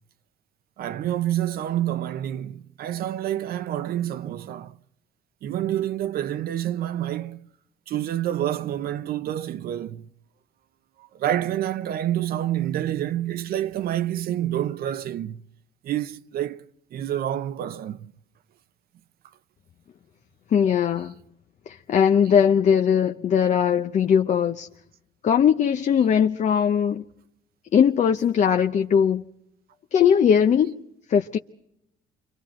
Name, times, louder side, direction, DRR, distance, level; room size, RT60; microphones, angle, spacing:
voice 1, 0.8-4.8 5.4-7.5 7.9-10.1 11.0-15.4 15.8-16.6 16.9-18.1 26.0-26.1, right 12 dB, 65° right, 0.8 m, -28 dB
voice 2, 20.5-21.1 21.7-24.7 25.2-27.0 27.7-29.2 29.9-30.7 31.1-31.4, left 8 dB, 45° left, 0.8 m, -20 dB
29.5 x 24.5 x 4.4 m
cardioid pair, 110°, 17 cm